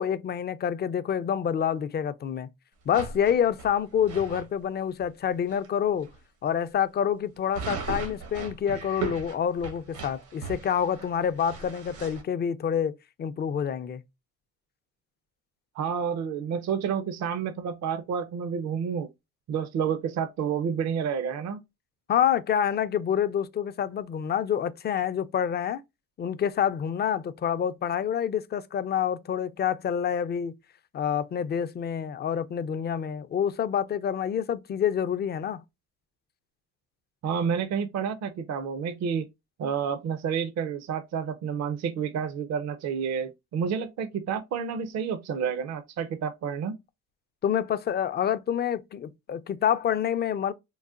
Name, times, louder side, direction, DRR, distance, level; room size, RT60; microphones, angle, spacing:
voice 1, 0.0-2.5 2.9-6.1 6.4-12.9 13.2-14.0 22.1-25.8 26.2-30.5 30.9-35.6 47.4-50.5, left 8 dB, 35° left, 0.4 m, -27 dB
sound 1, 2.9-4.5 5.0-5.1 5.5-5.7 6.0-6.2 7.5-12.2, right 4 dB, 85° right, 1.1 m, -38 dB
voice 2, 15.8-19.1 19.5-21.6 37.2-39.3 39.6-46.8, right 7 dB, 60° right, 0.5 m, -29 dB
3.9 x 2.1 x 2.4 m
cardioid pair, 90°, 30 cm